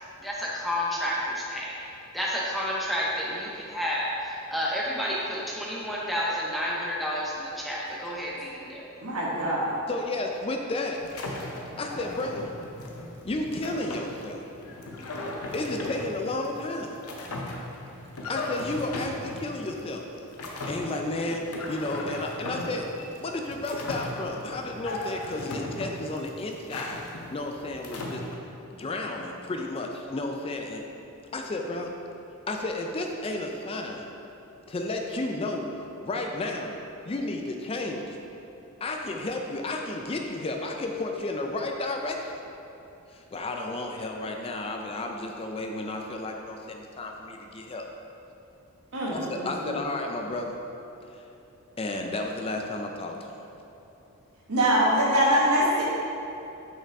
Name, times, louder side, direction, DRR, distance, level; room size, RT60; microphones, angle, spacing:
voice 1, 0.2-8.9, equal, ahead, -5 dB, 0.7 m, -30 dB
voice 2, 9.0-9.7 48.9-49.7 54.5-55.8, equal, 80° right, -5 dB, 1.4 m, -24 dB
voice 3, 9.9-11.0 11.8-12.5 13.2-14.4 15.5-17.0 18.3-20.0 20.6-22.9 23.2-27.0 27.3-28.2 28.7-30.8 31.3-31.9 32.5-34.1 34.7-35.7 36.0-36.8 37.1-38.2 38.8-42.3 43.1-47.9 49.1-50.6 51.1-51.2 51.8-53.5, left 2 dB, 25° left, 3 dB, 0.3 m, -32 dB
sound 1, 11.0-28.3, left 2 dB, 85° left, 0.8 m, -37 dB
5.9 x 5.5 x 3.5 m, 3.0 s
head